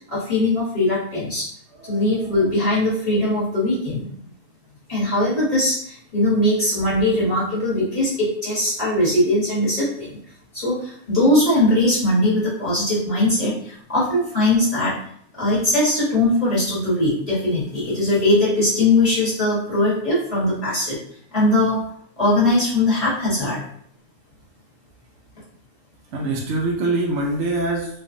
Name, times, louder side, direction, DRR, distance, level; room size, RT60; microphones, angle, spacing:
voice 1, 0.1-1.4 1.9-4.2 4.9-10.2 10.5-14.9 15.4-21.0 21.3-21.8 22.2-23.6, left 1 dB, 30° left, -9 dB, 1.2 m, -20 dB
voice 2, 1.8-2.3 26.1-27.9, right 2 dB, 65° right, -1 dB, 0.7 m, -24 dB
3.2 x 2.4 x 2.5 m, 0.64 s
omnidirectional pair, 1.6 m